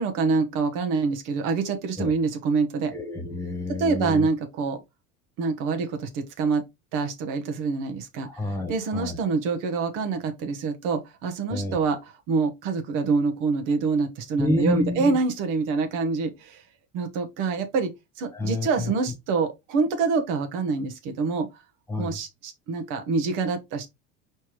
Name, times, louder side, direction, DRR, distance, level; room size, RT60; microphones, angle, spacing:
voice 1, 0.0-2.9 3.8-4.8 5.4-6.6 6.9-8.3 8.7-16.6 16.9-21.6 22.0-23.9, right 4 dB, 65° right, 1.1 m, -26 dB
voice 2, 2.9-4.3 8.2-9.2 11.5-11.8 14.4-15.1 18.3-18.9 21.9-22.2, left 2 dB, 10° left, 1.3 m, -29 dB
4.6 x 3.3 x 3.0 m
cardioid pair, 130°, 34 cm